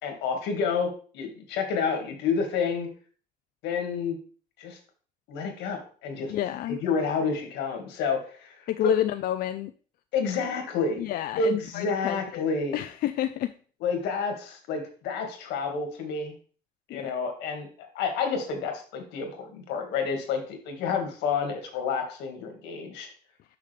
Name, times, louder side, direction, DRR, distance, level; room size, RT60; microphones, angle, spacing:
voice 1, 0.0-2.9 3.6-4.2 4.6-4.8 5.3-6.3 6.7-8.9 10.1-11.1 11.4-12.8 13.8-16.3 16.9-23.1, left 5 dB, 90° left, 4 dB, 1.9 m, -29 dB
voice 2, 6.3-6.8 8.7-9.7 11.0-12.5 12.7-13.5 16.9-17.1, left 13 dB, 65° left, 9 dB, 0.4 m, -29 dB
6.7 x 5.8 x 3.3 m, 0.41 s
cardioid pair, 110°, 17 cm